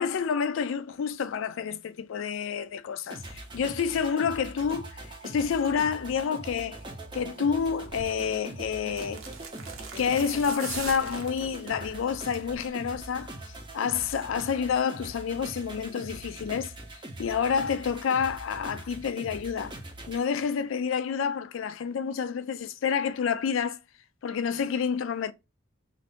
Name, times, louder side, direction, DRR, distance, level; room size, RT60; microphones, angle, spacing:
voice 1, 0.0-6.8 7.1-9.2 10.0-16.7 17.2-19.8 20.1-23.8 24.2-25.3, left 6 dB, 75° left, 0.3 m, -29 dB
sound 1, 3.1-20.2, right 1 dB, 25° right, 0.5 m, -42 dB
sound 2, 7.9-8.1 8.9-11.8 12.2-12.5 12.8-12.9, right 5 dB, 80° right, 0.8 m, -40 dB
2.6 x 2.4 x 3.5 m
head